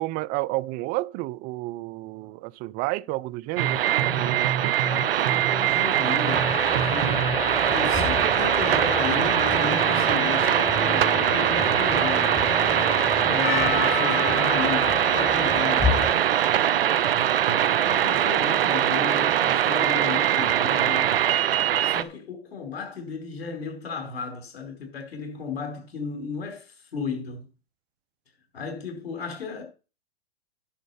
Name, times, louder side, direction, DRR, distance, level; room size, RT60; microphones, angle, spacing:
voice 1, 0.0-4.8, right 19 dB, 30° right, 0.5 m, -31 dB
sound 1, 3.6-22.0, right 11 dB, 65° right, 1.0 m, -22 dB
voice 2, 4.8-6.5 6.8-7.3 7.7-12.4 13.2-16.1 17.5-21.1 21.8-27.5 28.5-29.6, left 5 dB, 75° left, 4.6 m, -34 dB
sound 2, 6.2-16.1, left 5 dB, 15° left, 1.8 m, -30 dB
Percussion, 13.4-18.4, left 13 dB, 35° left, 3.0 m, -34 dB
10.5 x 5.2 x 7.1 m
hypercardioid pair, 110°, 31 cm